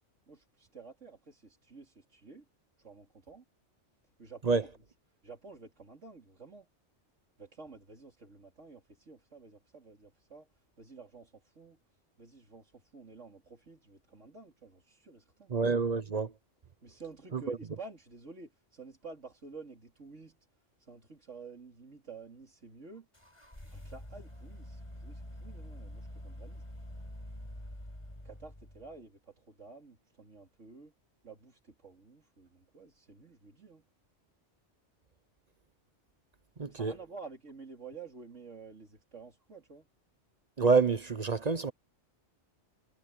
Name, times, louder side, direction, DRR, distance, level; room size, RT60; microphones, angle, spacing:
voice 1, 0.3-2.4 2.8-3.4 4.2-4.7 5.2-6.7 7.4-10.5 10.8-11.8 12.2-15.5 16.8-20.4 20.8-23.1 23.5-26.6 28.2-30.9 31.2-33.9 36.7-39.9, right 4 dB, 85° right, 3.8 m, -51 dB
voice 2, 15.5-16.3 17.5-17.6 36.6-36.9 40.6-41.7, right 4 dB, 40° right, 0.7 m, -27 dB
sound 1, 23.1-29.0, left 1 dB, 25° left, 5.1 m, -46 dB
omnidirectional pair, 1.2 m